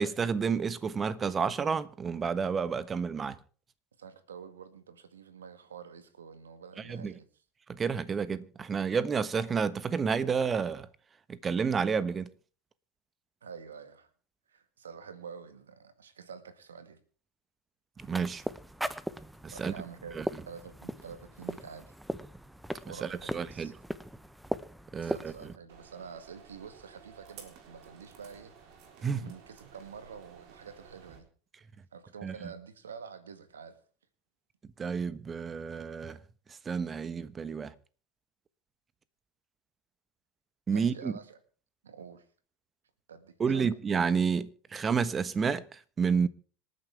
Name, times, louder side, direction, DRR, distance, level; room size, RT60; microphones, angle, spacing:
voice 1, 0.0-3.4 6.9-7.1 7.7-10.9 11.3-12.3 18.1-18.4 19.4-19.7 20.2-20.3 23.0-23.7 24.9-25.3 29.0-29.2 32.2-32.3 34.8-36.2 36.6-37.7 40.7-41.1 43.4-46.3, right 6 dB, 30° right, 1.3 m, -30 dB
voice 2, 4.0-7.3 13.4-14.1 14.5-17.0 19.5-21.9 22.9-23.7 25.0-28.8 29.2-31.3 31.9-33.8 40.7-41.4 41.8-42.3 43.1-43.7, right 6 dB, 85° right, 1.8 m, -47 dB
sound 1, 18.0-25.6, right 1 dB, 5° right, 1.0 m, -39 dB
sound 2, 25.7-31.2, right 7 dB, 55° right, 3.8 m, -54 dB
26.0 x 9.5 x 3.5 m
hypercardioid pair, 80°, 0 cm